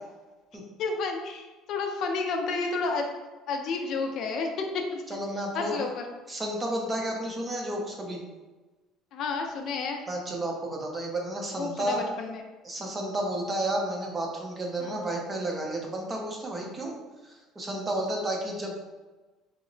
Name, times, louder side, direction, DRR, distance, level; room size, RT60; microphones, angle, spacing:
voice 1, 0.8-3.1 3.5-4.7 4.9-5.0 5.5-6.0 9.1-10.0 11.6-12.4 14.8-14.9, left 4 dB, 50° left, 3 dB, 0.4 m, -31 dB
voice 2, 5.1-5.8 6.3-8.2 10.1-12.0 12.6-16.9 17.2-18.8, right 1 dB, 20° right, 0 dB, 0.5 m, -32 dB
2.9 x 2.0 x 3.8 m, 1.2 s
cardioid pair, 150°, 0 cm